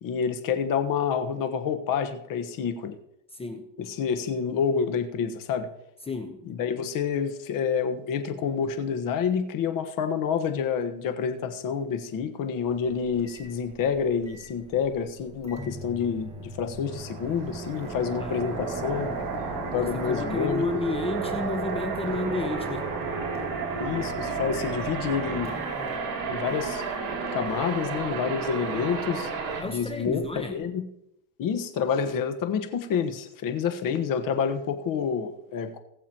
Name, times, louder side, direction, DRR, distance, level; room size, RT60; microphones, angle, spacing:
voice 1, 0.0-3.0 3.8-5.7 6.5-19.1 19.7-20.6 23.8-25.6 26.3-26.8 27.3-29.3 29.6-30.8 31.4-35.8, left 7 dB, 50° left, 8 dB, 1.4 m, -28 dB
voice 2, 3.3-3.7 6.0-6.5 18.2-19.2 19.8-22.9 29.6-30.6, left 2 dB, 15° left, 5 dB, 1.0 m, -32 dB
Microwave oven, 12.7-30.6, right 1 dB, 15° right, 1.5 m, -42 dB
sound 1, 16.9-29.6, right 4 dB, 50° right, 3.5 m, -32 dB
21.0 x 7.1 x 3.0 m, 0.82 s
cardioid pair, 130°, 42 cm